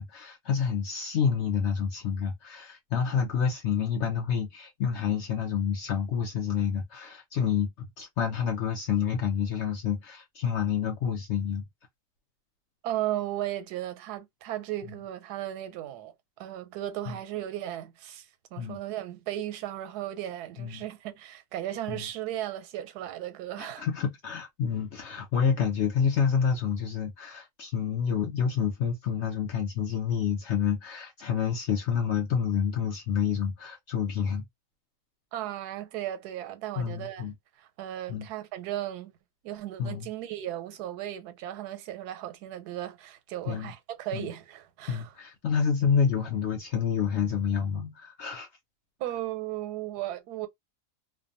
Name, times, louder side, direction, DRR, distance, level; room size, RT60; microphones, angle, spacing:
voice 1, 0.0-11.7 17.1-17.2 18.6-18.8 20.6-20.8 21.9-22.0 23.6-34.4 36.8-37.3 38.1-38.3 39.8-40.1 43.5-43.7 44.1-44.3 44.9-48.5, left 7 dB, 65° left, 0.7 m, -28 dB
voice 2, 12.8-18.3 18.5-23.9 35.3-37.3 37.6-39.1 39.4-45.1 49.0-50.5, right 13 dB, 85° right, 1.1 m, -36 dB
2.5 x 2.1 x 2.5 m
omnidirectional pair, 1.6 m